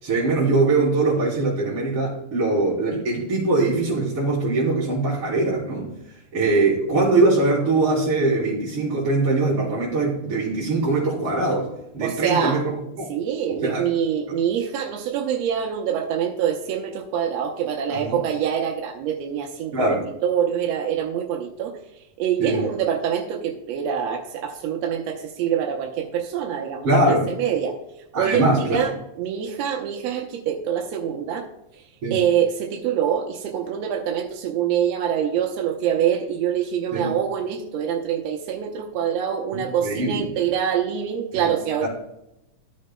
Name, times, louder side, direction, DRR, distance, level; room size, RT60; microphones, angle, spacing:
voice 1, 0.0-5.9 6.3-13.1 13.5-13.9 17.9-18.2 19.7-20.0 22.4-22.6 26.8-27.3 28.1-28.8 32.0-32.2 36.9-37.1 39.5-40.3 41.3-41.5 41.8-41.9, right 2 dB, 50° right, -8 dB, 3.4 m, -22 dB
voice 2, 12.0-12.6 13.1-27.8 28.2-31.5 31.7-31.8 32.1-41.9, right 8 dB, 70° right, 1 dB, 1.8 m, -25 dB
14.0 x 6.6 x 2.2 m, 0.87 s
omnidirectional pair, 3.5 m